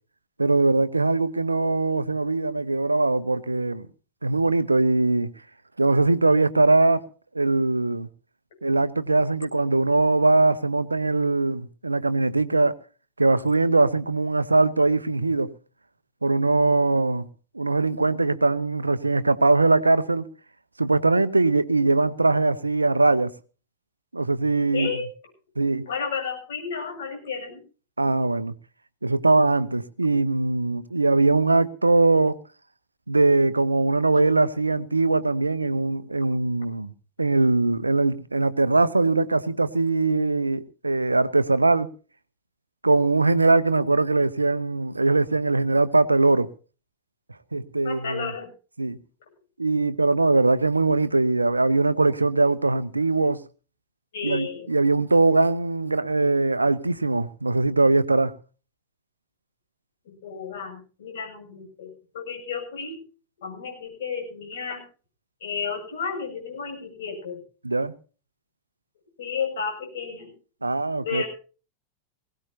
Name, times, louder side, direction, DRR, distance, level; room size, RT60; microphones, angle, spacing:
voice 1, 0.4-3.9 4.2-5.3 5.8-7.1 7.3-8.1 8.6-12.7 13.2-15.5 16.2-17.3 17.5-20.3 20.8-23.3 24.1-24.9 25.6-25.9 28.0-28.5 29.0-32.4 33.1-36.9 37.2-41.9 42.8-46.5 47.5-48.3 48.8-49.0 49.6-53.4 54.2-58.3 67.6-67.9 70.6-71.2, right 3 dB, 80° right, 0.8 m, -21 dB
voice 2, 24.7-25.1 25.9-27.6 47.8-48.5 54.1-54.7 60.0-63.0 63.4-64.8 65.4-67.4 69.2-70.3 71.0-71.3, left 6 dB, 60° left, 7.5 m, -32 dB
21.0 x 17.0 x 2.8 m
figure-of-eight pair, 90°, 0 cm